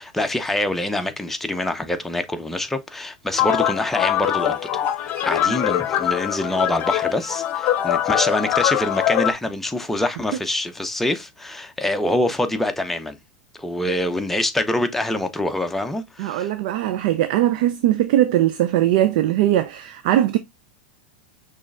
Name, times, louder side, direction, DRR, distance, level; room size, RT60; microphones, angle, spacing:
voice 1, 0.0-13.2 13.5-16.5, left 1 dB, 5° left, 0.8 m, -25 dB
sound 1, 3.3-9.3, left 11 dB, 40° left, 0.8 m, -22 dB
voice 2, 16.2-20.4, right 13 dB, 60° right, 0.5 m, -20 dB
6.1 x 3.3 x 2.4 m
hypercardioid pair, 105°, 5 cm